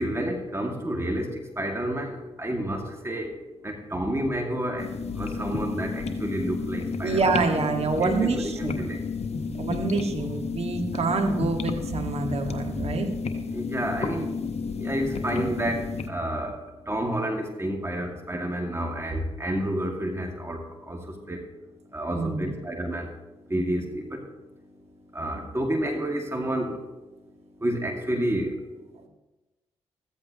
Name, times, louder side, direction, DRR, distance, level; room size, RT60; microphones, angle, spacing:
voice 1, 0.0-7.7 8.0-9.7 12.8-12.9 13.5-29.1, right 1 dB, 20° right, 2 dB, 2.3 m, -31 dB
sound 1, 4.8-16.1, left 4 dB, 50° left, 1.3 m, -32 dB
voice 2, 7.0-8.8 9.6-13.1 22.1-22.5, right 3 dB, 50° right, 3 dB, 2.1 m, -26 dB
14.5 x 14.5 x 3.1 m, 1.1 s
hypercardioid pair, 40°, 14 cm